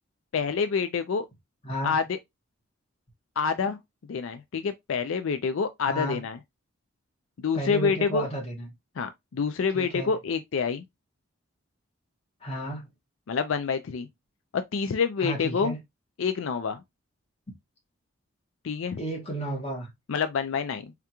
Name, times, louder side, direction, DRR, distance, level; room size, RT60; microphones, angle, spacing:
voice 1, 0.3-1.3 1.8-2.2 3.4-3.8 4.1-6.4 7.4-8.3 9.0-10.8 13.3-14.1 14.5-15.7 16.2-16.8 18.6-19.0 20.1-20.9, left 5 dB, 80° left, 0.4 m, -27 dB
voice 2, 1.6-1.9 5.8-6.2 7.5-8.7 9.7-10.1 12.4-12.9 15.2-15.8 19.0-19.9, right 1 dB, 30° left, 1.5 m, -32 dB
3.5 x 3.5 x 2.9 m
head